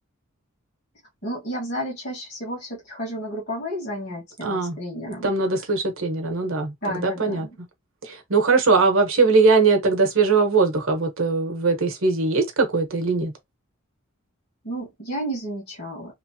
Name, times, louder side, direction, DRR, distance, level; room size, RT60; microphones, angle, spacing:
voice 1, 1.2-5.3 6.8-7.5 14.6-16.2, equal, 50° left, 1.5 m, -32 dB
voice 2, 4.4-4.8 5.2-7.5 8.0-13.3, right 4 dB, 65° right, 0.9 m, -21 dB
3.1 x 2.0 x 2.7 m
head